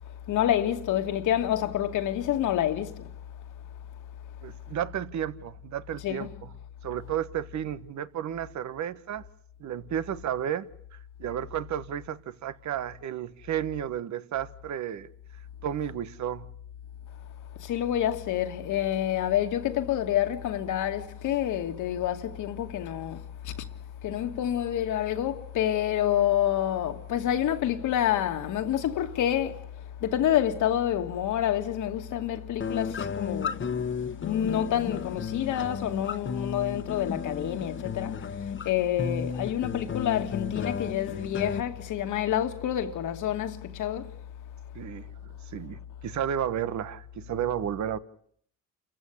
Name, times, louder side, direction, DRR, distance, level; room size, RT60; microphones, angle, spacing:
voice 1, 0.3-3.1 6.0-6.3 17.6-23.7 24.0-29.6 30.0-38.3 38.6-44.1, left 11 dB, 80° left, 2.2 m, -28 dB
voice 2, 4.4-6.5 6.8-9.3 9.6-10.7 11.2-15.1 15.6-16.5 44.7-45.1 45.5-48.0, right 10 dB, 65° right, 1.3 m, -32 dB
sound 1, 32.6-41.6, left 6 dB, 40° left, 1.3 m, -33 dB
29.0 x 15.0 x 9.8 m
cardioid pair, 90°, 30 cm